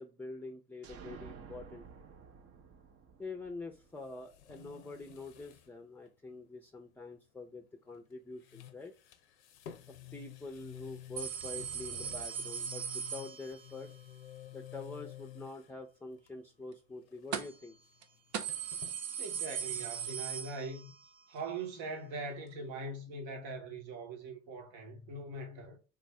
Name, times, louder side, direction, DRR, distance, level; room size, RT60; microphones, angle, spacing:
voice 1, 0.0-1.8 3.2-8.9 9.9-13.9 14.5-17.8, left 3 dB, 5° left, 0.5 m, -46 dB
sound 1, 0.8-4.5, right 6 dB, 45° right, 0.6 m, -52 dB
sound 2, 3.8-5.7 6.0-6.1 7.9-8.1 8.4-15.8 16.2-16.6 16.8-19.0, left 12 dB, 85° left, 0.5 m, -52 dB
sound 3, 11.2-13.9 17.3-17.7 18.0-18.1 18.3-21.1 21.4-21.5 22.5-22.6, right 8 dB, 85° right, 0.6 m, -39 dB
voice 2, 19.2-20.9 21.3-25.8, right 3 dB, 70° right, 1.1 m, -42 dB
3.5 x 2.5 x 3.2 m
hypercardioid pair, 65°, 33 cm